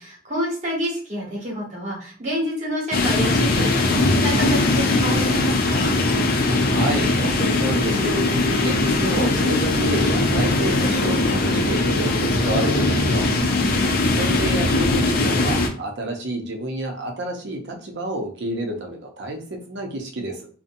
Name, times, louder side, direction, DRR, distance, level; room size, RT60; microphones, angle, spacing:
voice 1, 0.0-5.9 13.3-13.9, equal, 35° right, -5 dB, 1.2 m, -28 dB
sound 1, 2.9-15.7, left 2 dB, 50° left, 0.4 m, -20 dB
voice 2, 6.5-13.3 14.1-20.5, right 1 dB, 60° right, 2 dB, 0.6 m, -29 dB
sound 2, 7.7-13.0, left 1 dB, 30° left, 1.1 m, -32 dB
2.7 x 2.1 x 2.6 m, 0.42 s
head